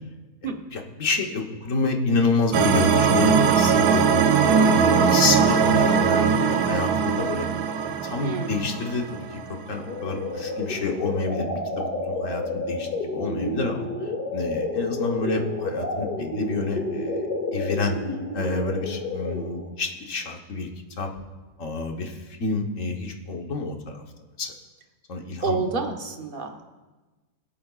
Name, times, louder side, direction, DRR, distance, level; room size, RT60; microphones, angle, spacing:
voice 1, 0.4-4.0 4.4-7.5 8.0-9.4 9.7-18.0 18.3-20.7 21.0-21.1 21.6-24.0 24.4-24.5 25.1-25.6, left 3 dB, 50° left, 2 dB, 1.5 m, -28 dB
sound 1, 2.5-9.6, right 6 dB, 70° right, 1.1 m, -20 dB
voice 2, 8.2-8.8 25.4-26.7, right 4 dB, 40° right, 4 dB, 0.9 m, -29 dB
sound 2, 9.7-19.7, left 2 dB, 70° left, 3.0 m, -30 dB
23.5 x 8.6 x 2.4 m, 1.2 s
omnidirectional pair, 1.8 m